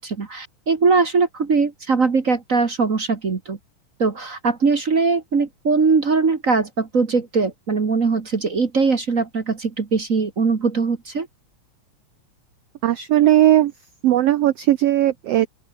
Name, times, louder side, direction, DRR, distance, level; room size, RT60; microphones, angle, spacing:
voice 1, 0.0-3.6 4.0-11.3, right 4 dB, 40° right, 1.2 m, -21 dB
voice 2, 12.8-13.7 14.0-15.5, right 13 dB, 85° right, 1.3 m, -17 dB
open air
omnidirectional pair, 3.8 m